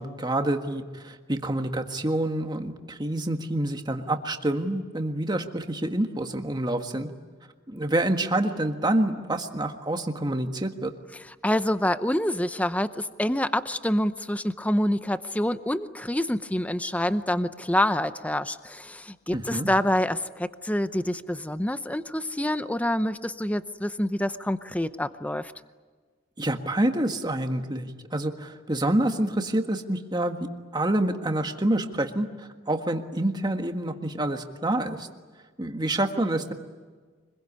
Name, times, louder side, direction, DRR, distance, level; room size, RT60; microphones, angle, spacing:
voice 1, 0.0-7.1 7.7-10.9 19.3-19.7 26.4-30.4 30.7-35.1 35.6-36.5, right 1 dB, 20° right, 5 dB, 1.6 m, -27 dB
voice 2, 11.4-25.5, left 1 dB, 5° left, 12 dB, 0.7 m, -27 dB
25.0 x 22.0 x 9.7 m, 1.5 s
head